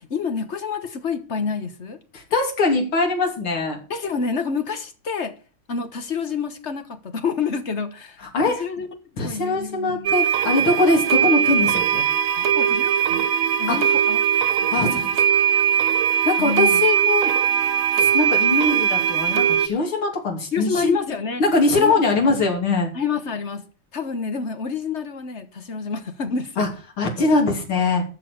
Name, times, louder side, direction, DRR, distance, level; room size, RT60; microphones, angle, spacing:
voice 1, 0.0-2.0 3.9-5.3 5.7-8.9 9.2-10.1 12.3-13.3 13.6-14.2 14.6-15.1 16.4-16.8 20.5-21.4 21.8-22.3 22.9-23.7 23.9-26.7, left 5 dB, 40° left, 1.3 m, -28 dB
voice 2, 2.1-3.8 8.3-8.5 9.2-12.1 13.7-14.0 14.7-15.1 16.3-17.3 18.0-21.0 21.4-22.9 26.6-26.7 27.0-28.0, left 3 dB, 80° left, 3.8 m, -21 dB
sound 1, 10.0-19.7, right 9 dB, 70° right, 0.8 m, -20 dB
13.5 x 6.5 x 6.5 m
omnidirectional pair, 2.3 m